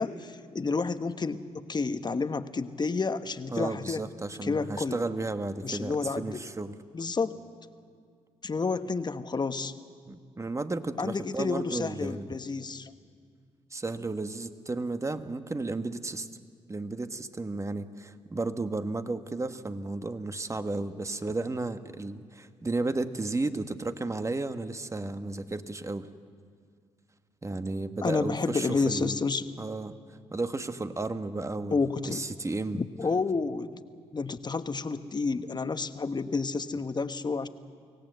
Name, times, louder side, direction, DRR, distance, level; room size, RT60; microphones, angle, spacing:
voice 1, 0.0-4.0 4.4-5.0 5.6-6.4 6.9-7.4 8.4-9.7 11.0-12.9 28.0-29.5 31.7-32.2 32.7-33.8 34.1-37.5, left 4 dB, 35° left, 10 dB, 1.2 m, -30 dB
voice 2, 3.5-6.7 10.1-12.3 13.7-16.3 16.7-26.1 27.4-29.2 29.6-30.0 30.3-31.8 32.1-32.8, right 2 dB, 25° right, 9 dB, 1.4 m, -33 dB
24.5 x 17.5 x 8.0 m, 2.1 s
supercardioid pair, 55°, 13 cm